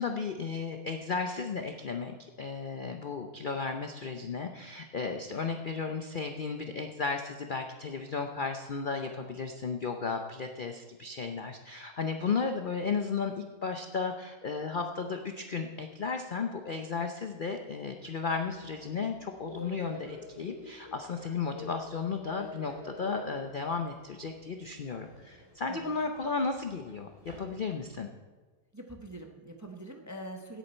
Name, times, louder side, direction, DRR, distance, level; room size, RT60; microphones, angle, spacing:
voice 1, 0.0-28.1, left 5 dB, 55° left, 5 dB, 0.5 m, -34 dB
Subway metro underground, 18.3-28.1, left 1 dB, 15° left, 3.4 m, -49 dB
voice 2, 28.7-30.6, right 1 dB, 15° right, 4 dB, 0.6 m, -44 dB
16.5 x 8.4 x 4.4 m, 1.3 s
omnidirectional pair, 1.7 m